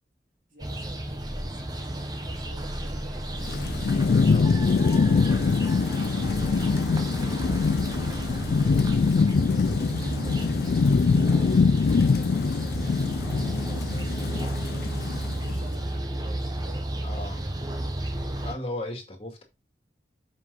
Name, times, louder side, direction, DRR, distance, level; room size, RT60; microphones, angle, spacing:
voice 1, 0.5-4.0 5.0-10.5 11.1-13.2 13.5-17.9, right 2 dB, 45° right, 3.0 m, -50 dB
sound 1, 0.6-18.5, right 1 dB, 20° right, 1.1 m, -32 dB
Thunderstorm / Rain, 3.4-15.7, left 4 dB, 60° left, 0.3 m, -23 dB
voice 2, 4.2-4.6 17.0-17.4 18.4-19.4, left 1 dB, 35° left, 2.2 m, -36 dB
7.7 x 5.5 x 4.0 m
head